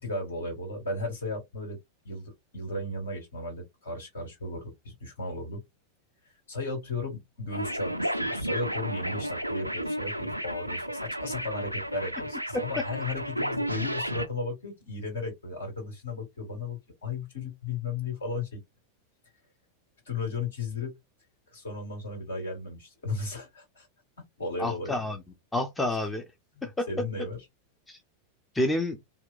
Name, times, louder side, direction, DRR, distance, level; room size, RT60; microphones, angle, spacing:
voice 1, 0.0-1.8 2.0-5.6 6.5-18.6 20.0-20.9 21.5-23.9 24.4-24.9 26.5-27.4, left 3 dB, 65° left, 1.8 m, -35 dB
sound 1, 7.5-14.3, equal, 90° right, 0.4 m, -32 dB
voice 2, 24.6-25.2 25.5-26.2 26.6-26.9 27.9-28.0 28.5-29.0, left 1 dB, 10° left, 0.5 m, -28 dB
2.8 x 2.2 x 2.4 m
figure-of-eight pair, 90°, 0 cm